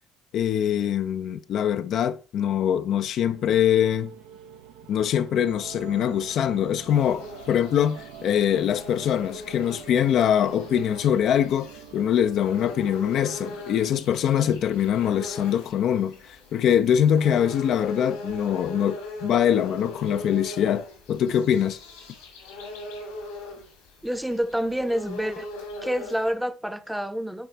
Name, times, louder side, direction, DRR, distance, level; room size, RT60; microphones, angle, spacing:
voice 1, 0.3-4.1 4.9-21.8, left 9 dB, 60° left, 0.4 m, -23 dB
sound 1, 3.3-16.2, right 8 dB, 75° right, 0.7 m, -47 dB
sound 2, 6.9-26.3, left 1 dB, 80° left, 2.0 m, -40 dB
voice 2, 24.0-25.5 25.8-27.5, equal, 5° right, 0.7 m, -28 dB
9.4 x 4.1 x 3.3 m
hypercardioid pair, 50°, 0 cm